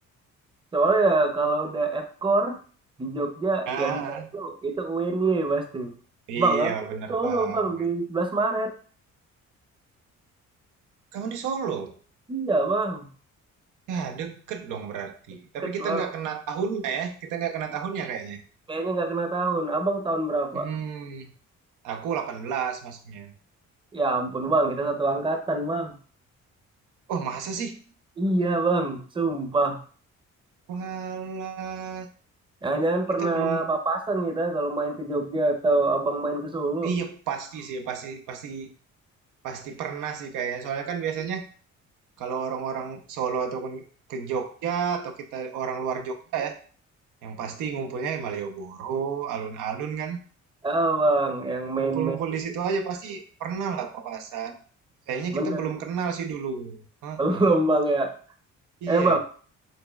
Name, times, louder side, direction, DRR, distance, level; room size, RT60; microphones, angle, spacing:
voice 1, 0.7-2.6 3.0-5.9 6.4-6.7 7.1-8.7 12.3-13.1 15.6-16.1 18.7-20.7 23.9-26.0 28.2-29.8 32.6-36.9 50.6-52.2 55.3-55.7 57.2-58.1 58.9-59.2, right 2 dB, 15° right, 5 dB, 0.6 m, -25 dB
voice 2, 3.7-4.3 6.3-7.6 11.1-12.0 13.9-18.4 20.5-21.3 21.8-23.3 27.1-27.9 30.7-32.1 33.2-33.7 36.8-38.7 39.4-41.5 42.2-43.8 44.1-46.6 47.2-50.2 51.8-54.6 55.1-57.5 58.8-59.2, right 6 dB, 90° right, 6 dB, 0.6 m, -31 dB
4.1 x 3.0 x 2.3 m, 0.42 s
cardioid pair, 90°, 30 cm